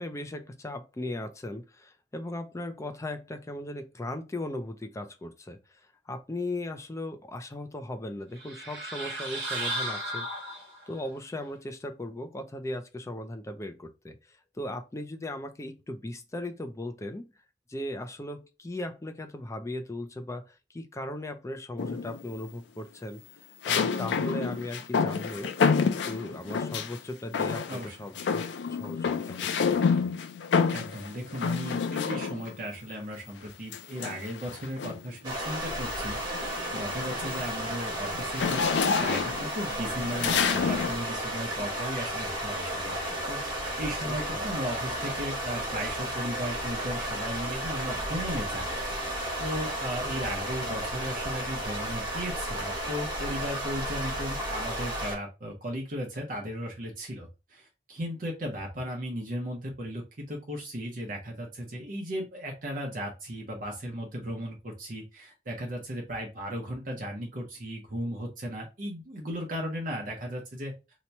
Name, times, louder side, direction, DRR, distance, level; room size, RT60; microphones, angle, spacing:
voice 1, 0.0-5.6 6.1-10.5 10.9-14.2 14.6-17.3 17.7-23.2 23.7-25.5 26.0-29.5 29.9-30.2 44.1-44.5, left 1 dB, 15° left, 0.4 m, -37 dB
sound 1, 8.4-11.0, right 1 dB, 70° right, 1.2 m, -34 dB
sound 2, 21.8-22.3 23.6-27.0 27.3-27.9 28.1-32.6 33.7-35.1 35.6-35.9 36.2-41.0, left 6 dB, 85° left, 0.4 m, -28 dB
voice 2, 27.7-28.3 30.7-43.4 43.8-70.7, equal, 50° right, 0.8 m, -36 dB
sound 3, 35.2-55.2, right 1 dB, 25° right, 1.4 m, -33 dB
2.9 x 2.2 x 4.0 m
head